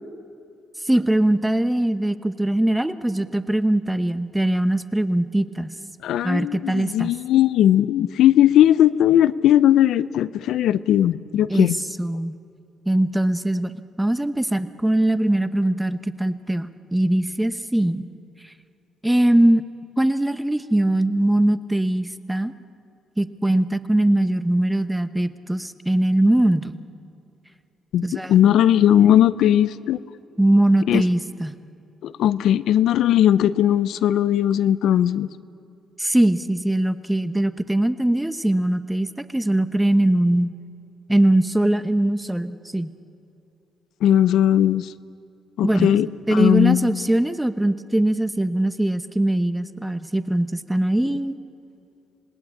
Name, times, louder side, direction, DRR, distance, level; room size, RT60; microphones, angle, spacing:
voice 1, 0.8-5.7 6.2-7.1 11.5-11.7 12.0-12.4 12.9-18.1 19.0-19.6 20.0-22.5 23.2-26.8 28.0-28.3 30.4-31.5 36.0-40.5 41.1-42.9 45.6-51.4, right 1 dB, 5° right, 11 dB, 1.1 m, -21 dB
voice 2, 6.0-11.8 27.9-30.0 30.9-31.0 32.0-35.3 44.0-44.9 45.6-47.0, left 11 dB, 80° left, 16 dB, 0.6 m, -18 dB
27.0 x 19.5 x 8.6 m, 2.7 s
cardioid pair, 90°, 0 cm